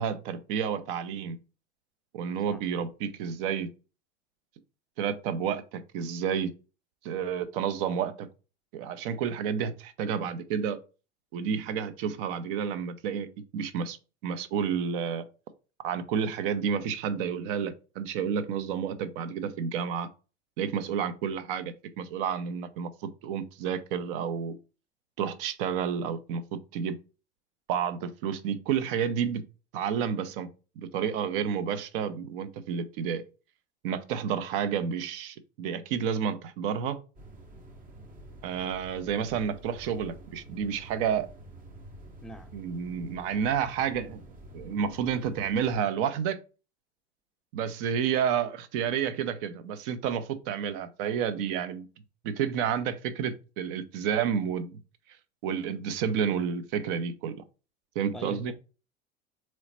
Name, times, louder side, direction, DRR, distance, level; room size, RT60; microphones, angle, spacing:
voice 1, 0.0-1.4 2.1-3.7 5.0-6.5 7.0-8.3 8.7-10.8 11.3-14.0 14.2-15.3 15.8-20.1 20.6-24.6 25.2-27.0 27.7-29.5 29.7-30.5 30.8-33.2 33.8-37.0 38.4-41.3 42.5-44.2 44.5-46.4 47.5-51.9 52.2-54.8 55.4-57.3 57.9-58.5, right 7 dB, 50° right, 0.7 m, -30 dB
voice 2, 2.5-2.9 42.2-42.5 58.1-58.5, left 1 dB, ahead, 0.5 m, -43 dB
sound 1, 37.2-45.8, right 1 dB, 25° right, 0.8 m, -48 dB
3.9 x 3.1 x 4.3 m
figure-of-eight pair, 75°, 35 cm